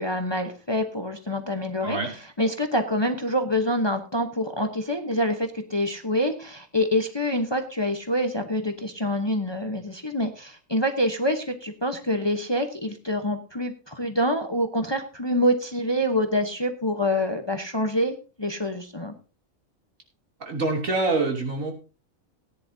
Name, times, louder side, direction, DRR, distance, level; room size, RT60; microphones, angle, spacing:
voice 1, 0.0-2.0 2.4-19.1, equal, 20° left, 6 dB, 0.9 m, -26 dB
voice 2, 1.8-2.1 20.4-21.7, right 3 dB, 70° right, 1 dB, 3.2 m, -25 dB
17.5 x 10.5 x 2.7 m, 0.33 s
omnidirectional pair, 1.4 m